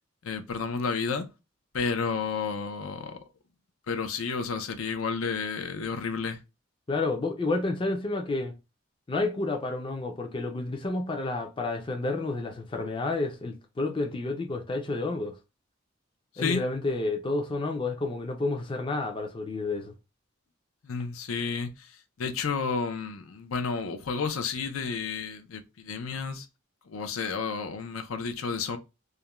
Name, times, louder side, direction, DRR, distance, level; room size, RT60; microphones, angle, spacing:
voice 1, 0.2-1.3 1.7-3.2 3.9-6.4 16.4-16.6 20.8-26.5 26.9-28.8, left 5 dB, 85° left, 0.5 m, -31 dB
voice 2, 6.9-8.5 9.1-15.4 16.4-19.9, left 2 dB, 25° left, 0.4 m, -30 dB
2.4 x 2.1 x 2.9 m
head